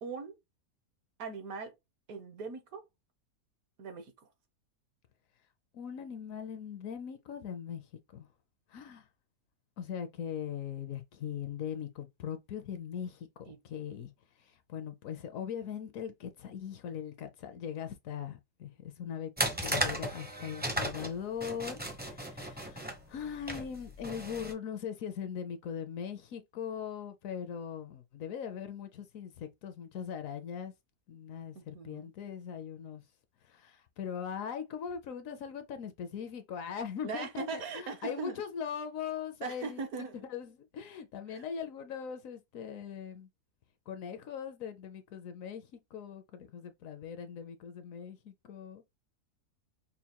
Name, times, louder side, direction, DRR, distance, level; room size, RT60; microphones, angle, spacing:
voice 1, 0.0-0.3 1.2-1.7 2.1-2.8 3.8-4.1 13.5-13.6 31.5-32.1 37.0-38.4 39.4-40.3 41.3-41.4, right 4 dB, 70° right, 1.3 m, -40 dB
voice 2, 5.7-7.9 8.1-8.3 8.7-9.0 9.8-14.1 14.4-19.3 19.6-30.7 31.1-33.0 33.5-43.3 43.9-48.8, left 8 dB, 70° left, 0.9 m, -40 dB
sound 1, 19.4-24.5, equal, 10° right, 0.4 m, -35 dB
5.6 x 2.2 x 2.9 m
omnidirectional pair, 1.6 m